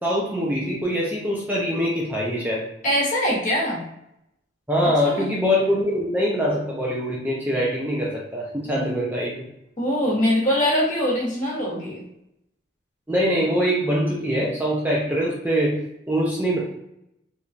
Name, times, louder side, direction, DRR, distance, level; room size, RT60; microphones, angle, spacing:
voice 1, 0.0-2.7 4.7-9.5 13.1-15.8 16.1-16.6, equal, 10° right, -4 dB, 0.4 m, -23 dB
voice 2, 2.8-3.8 5.0-5.2 9.8-12.0, equal, 40° left, -5 dB, 1.0 m, -22 dB
3.0 x 2.3 x 2.5 m, 0.81 s
head